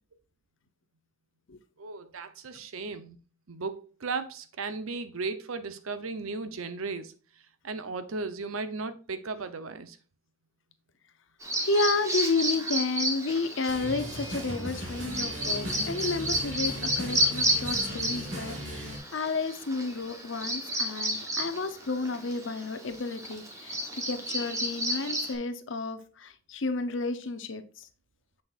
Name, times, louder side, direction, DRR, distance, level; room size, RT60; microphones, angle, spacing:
voice 1, 1.8-3.2 3.5-7.1 7.6-10.0, right 4 dB, 80° right, 0.7 m, -36 dB
Bird vocalization bird call bird song, 11.4-25.3, right 1 dB, 15° right, 1.0 m, -32 dB
voice 2, 11.6-27.9, left 3 dB, 60° left, 0.7 m, -31 dB
sound 1, 13.7-19.0, equal, 60° right, 2.2 m, -37 dB
7.0 x 6.2 x 2.5 m
head